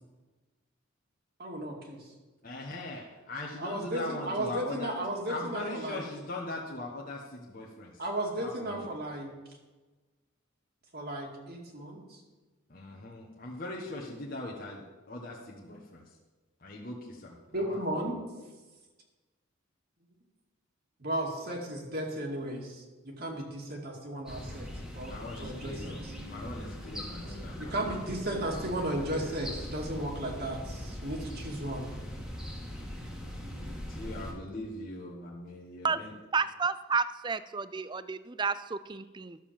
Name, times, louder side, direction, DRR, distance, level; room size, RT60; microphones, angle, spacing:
voice 1, 1.4-2.0 3.6-6.0 8.0-9.3 10.9-12.2 17.5-18.2 21.0-24.7 24.9-25.1 25.4-26.1 27.3-31.9, right 1 dB, 45° right, -1 dB, 2.2 m, -35 dB
voice 2, 2.4-4.9 5.3-8.0 8.4-8.9 12.7-16.1 16.6-18.1 25.1-28.0 33.6-36.1, left 2 dB, 40° left, -2 dB, 1.3 m, -41 dB
sound 1, 24.3-34.3, left 1 dB, ahead, 1.8 m, -41 dB
voice 3, 36.3-39.4, right 5 dB, 20° right, 14 dB, 0.4 m, -31 dB
12.0 x 6.9 x 7.4 m, 1.2 s
head